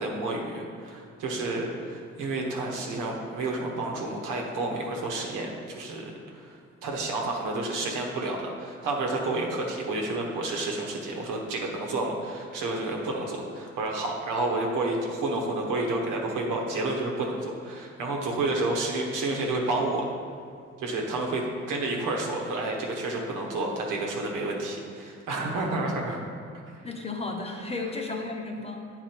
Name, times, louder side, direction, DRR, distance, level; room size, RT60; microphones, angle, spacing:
voice 1, 0.0-20.1 20.8-26.2, right 2 dB, 90° right, 0 dB, 1.1 m, -30 dB
voice 2, 26.8-28.9, left 3 dB, 20° left, 1 dB, 0.9 m, -33 dB
8.0 x 4.2 x 4.4 m, 2.3 s
cardioid pair, 90°, 30 cm